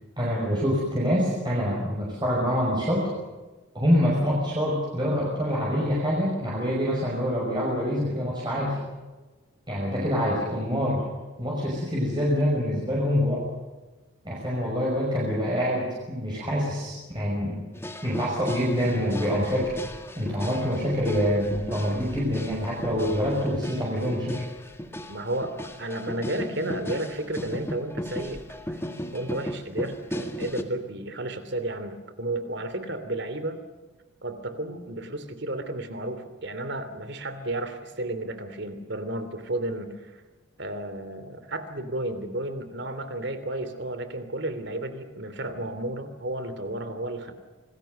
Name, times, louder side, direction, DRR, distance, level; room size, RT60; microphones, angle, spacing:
voice 1, 0.2-3.1 3.7-8.8 9.7-11.0 11.4-13.5 14.2-17.6 18.0-19.8 20.2-24.4, equal, 20° right, -4 dB, 5.7 m, -26 dB
sound 1, 17.7-30.6, equal, 10° left, 1.7 m, -36 dB
voice 2, 25.1-28.4 28.7-28.8 29.1-33.6 34.2-40.1 40.6-47.3, right 1 dB, 55° right, 11 dB, 3.0 m, -32 dB
27.5 x 20.5 x 6.6 m, 1.2 s
head